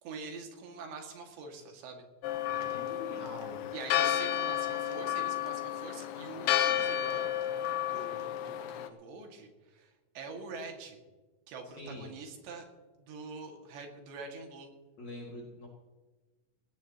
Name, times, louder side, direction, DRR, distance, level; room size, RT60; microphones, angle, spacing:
voice 1, 0.0-2.0 3.7-7.4 7.9-8.3 8.7-11.0 11.5-12.7 13.0-14.7, right 4 dB, 75° right, 2 dB, 4.4 m, -45 dB
Church bell, 2.2-8.9, left 11 dB, 90° left, 3.1 m, -32 dB
voice 2, 2.4-3.6 3.9-4.0 11.8-12.1 15.0-15.7, left 2 dB, 45° left, -3 dB, 3.0 m, -44 dB
19.0 x 18.0 x 3.0 m, 1.2 s
omnidirectional pair, 5.0 m